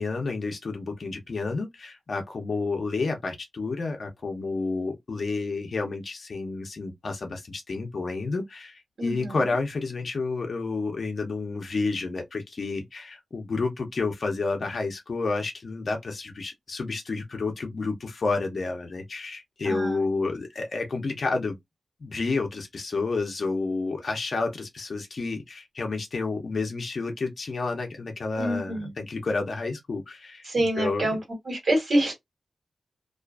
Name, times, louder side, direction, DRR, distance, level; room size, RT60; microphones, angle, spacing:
voice 1, 0.0-21.5 22.0-31.2, left 3 dB, 55° left, 0.6 m, -30 dB
voice 2, 9.0-9.4 19.6-20.0 28.4-28.9 30.4-31.2 31.4-32.1, right 1 dB, 60° right, 1.2 m, -26 dB
2.4 x 2.3 x 2.3 m
wide cardioid pair, 155°, 0 cm